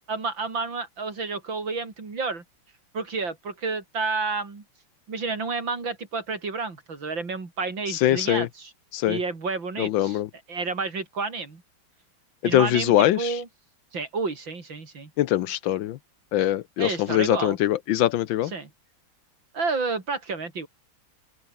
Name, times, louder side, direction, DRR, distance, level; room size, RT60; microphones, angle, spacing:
voice 1, 0.1-2.4 2.9-4.6 5.1-8.7 9.0-10.2 10.5-11.6 12.4-13.5 13.9-15.1 16.8-17.6 18.5-18.7 19.5-20.7, right 4 dB, 65° right, 4.6 m, -30 dB
voice 2, 7.9-8.5 8.9-9.2 9.8-10.3 12.5-13.4 15.2-16.0 16.3-18.5, left 13 dB, 75° left, 1.4 m, -22 dB
open air
omnidirectional pair, 2.3 m